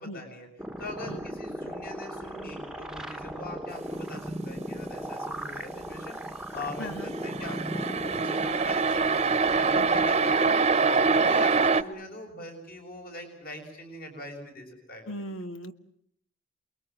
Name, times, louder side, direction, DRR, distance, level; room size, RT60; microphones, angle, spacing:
voice 1, 0.1-0.5 0.8-6.2 6.5-10.5 10.8-15.1, left 1 dB, 50° left, 3 dB, 6.8 m, -41 dB
sound 1, 0.6-10.2, right 1 dB, 5° right, 1.1 m, -37 dB
voice 2, 6.8-7.1 9.7-10.5 15.1-15.7, equal, 85° left, 9 dB, 2.0 m, -39 dB
sound 2, 7.1-11.8, right 4 dB, 30° right, 1.0 m, -24 dB
29.5 x 22.0 x 7.7 m, 0.67 s
head